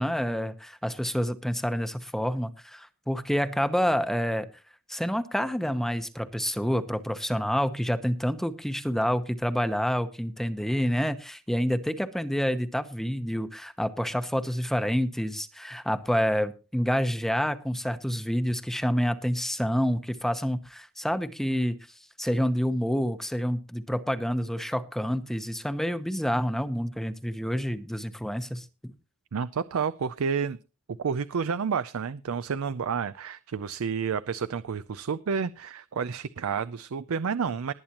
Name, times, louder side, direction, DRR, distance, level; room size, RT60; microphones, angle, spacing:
voice 1, 0.0-4.5 4.9-21.8 22.2-28.9, equal, ahead, 10 dB, 0.9 m, -28 dB
voice 2, 29.3-30.6 31.0-37.7, right 6 dB, 85° right, 14 dB, 0.5 m, -30 dB
20.0 x 8.7 x 3.0 m, 0.31 s
head